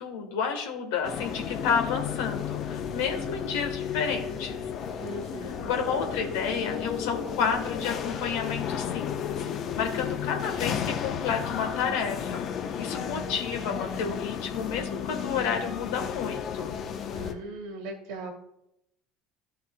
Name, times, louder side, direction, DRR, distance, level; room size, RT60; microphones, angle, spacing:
voice 1, 0.0-4.6 5.4-9.4 9.8-12.5 12.8-16.8, left 6 dB, 70° left, 4 dB, 1.3 m, -31 dB
sound 1, 1.0-17.3, left 8 dB, 50° left, 0.8 m, -33 dB
voice 2, 5.0-5.7 17.1-18.3, right 2 dB, 65° right, 4 dB, 1.8 m, -39 dB
13.5 x 5.8 x 2.2 m, 0.83 s
hypercardioid pair, 65°, 0 cm